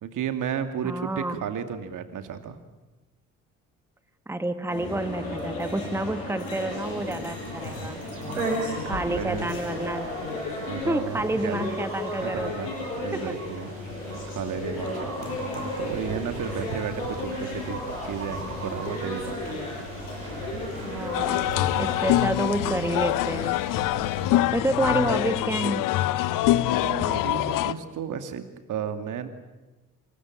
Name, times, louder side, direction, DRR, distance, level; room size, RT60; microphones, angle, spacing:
voice 1, 0.0-2.6 7.9-9.5 10.6-11.7 12.2-12.7 13.0-13.7 14.3-19.6 21.6-21.8 24.0-24.3 26.2-29.3, right 8 dB, 50° right, 8 dB, 2.4 m, -34 dB
voice 2, 0.8-1.4 4.3-8.0 8.8-10.1 10.8-12.7 13.1-13.3 20.8-23.6 24.5-25.9, right 1 dB, 5° right, 11 dB, 1.6 m, -29 dB
sound 1, 4.7-21.9, left 2 dB, 70° left, 6.8 m, -34 dB
sound 2, 6.7-24.4, right 2 dB, 80° right, 5.5 m, -39 dB
sound 3, 21.1-27.7, left 15 dB, 50° left, 0.9 m, -24 dB
26.0 x 21.5 x 9.0 m, 1.1 s
figure-of-eight pair, 50°, 40 cm